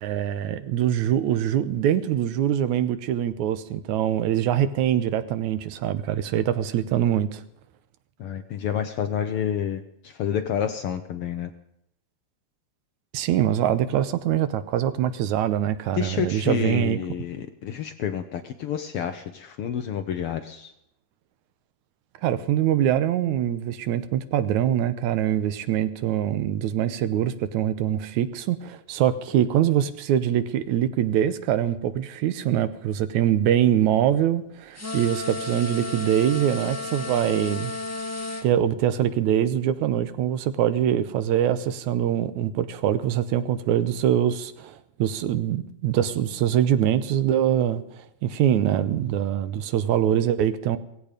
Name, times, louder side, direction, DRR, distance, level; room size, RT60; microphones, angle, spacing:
voice 1, 0.0-7.4 13.1-17.0 22.2-37.7 38.4-47.8 48.2-50.8, right 10 dB, 80° right, 2.3 m, -23 dB
voice 2, 8.2-11.5 15.9-20.7, left 9 dB, 70° left, 1.4 m, -29 dB
sound 1, 34.7-38.5, left 2 dB, 15° left, 0.6 m, -33 dB
17.0 x 16.0 x 5.1 m
omnidirectional pair, 3.4 m